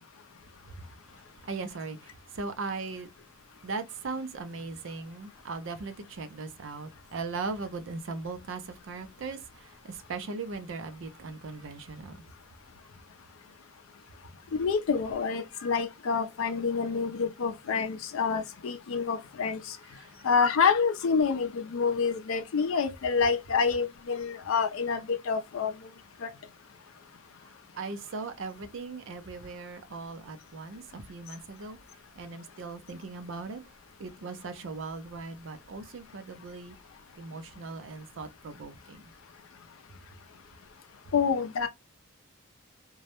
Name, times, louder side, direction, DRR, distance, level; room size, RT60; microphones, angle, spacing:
voice 1, 0.7-3.1 3.5-12.2 19.8-20.3 27.4-31.8 32.1-33.7 34.0-36.8 37.1-39.1, right 4 dB, 70° right, 0.4 m, -39 dB
voice 2, 14.6-19.6 20.2-25.7 26.2-26.3 41.1-41.7, left 5 dB, 80° left, 0.4 m, -27 dB
2.2 x 2.0 x 2.8 m
head